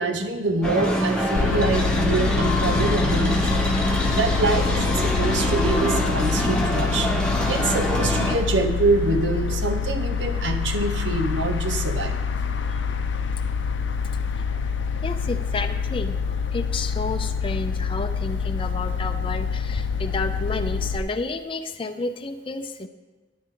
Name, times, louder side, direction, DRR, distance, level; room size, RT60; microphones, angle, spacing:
voice 1, 0.0-3.6 4.1-7.1 7.5-12.2, right 3 dB, 80° right, 7 dB, 1.0 m, -25 dB
sound 1, 0.6-8.4, equal, 5° left, 1.1 m, -24 dB
sound 2, 1.3-21.0, left 5 dB, 90° left, 0.6 m, -26 dB
voice 2, 15.0-22.9, left 3 dB, 30° left, 7 dB, 0.5 m, -31 dB
11.5 x 9.7 x 3.8 m, 1.3 s
head